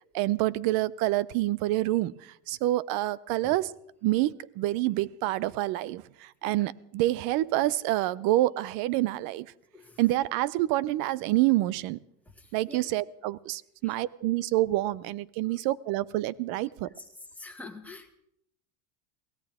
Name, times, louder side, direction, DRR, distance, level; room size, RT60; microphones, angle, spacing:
voice 1, 0.1-3.7 4.0-9.5 10.0-12.0 12.5-16.9, right 16 dB, 60° right, 21 dB, 0.7 m, -27 dB
voice 2, 12.4-12.8 13.8-13.9 17.4-18.1, left 3 dB, 5° left, 2 dB, 1.9 m, -46 dB
23.0 x 17.0 x 3.6 m, 0.74 s
supercardioid pair, 135°, 42 cm